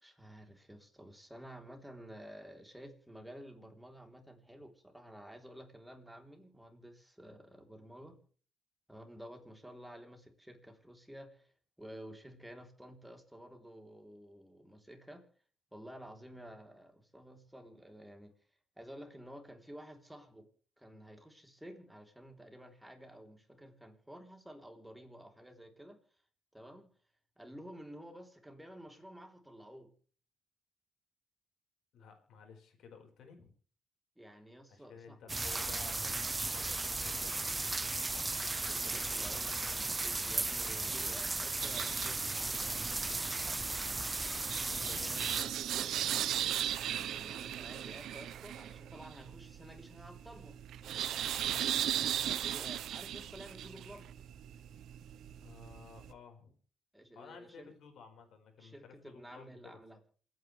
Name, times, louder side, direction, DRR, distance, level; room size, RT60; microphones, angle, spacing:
voice 1, 0.0-8.2 8.9-11.5 11.8-15.2 15.7-18.3 18.8-20.5 20.8-26.0 26.5-26.9 27.4-29.9 34.2-35.2 38.4-42.8 46.7-50.6 51.9-54.1 56.9-57.7 58.6-60.0, equal, 5° right, 4 dB, 3.4 m, -52 dB
voice 2, 31.9-33.5 34.7-37.7 44.7-46.1 51.5-51.8 55.4-56.5 57.1-59.8, left 6 dB, 70° left, 4 dB, 4.8 m, -54 dB
sound 1, 35.3-45.4, right 3 dB, 20° right, 0.6 m, -35 dB
sound 2, 41.6-56.1, right 11 dB, 75° right, 0.9 m, -38 dB
28.0 x 9.5 x 3.3 m, 0.42 s
cardioid pair, 90°, 0 cm